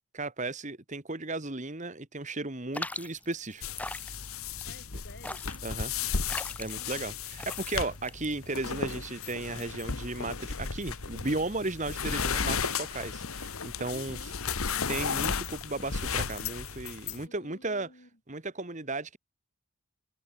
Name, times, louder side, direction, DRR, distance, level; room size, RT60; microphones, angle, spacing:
voice 1, 0.1-3.6 5.6-5.9 6.6-14.2 14.9-17.9 18.3-19.2, right 2 dB, 35° right, 1.8 m, -35 dB
sound 1, 2.7-8.7, left 2 dB, 5° left, 2.3 m, -41 dB
sound 2, 3.6-17.2, left 6 dB, 85° left, 1.6 m, -34 dB
voice 2, 4.6-6.0 6.7-7.2 13.9-14.4 17.3-18.4, left 1 dB, 55° left, 4.7 m, -53 dB
head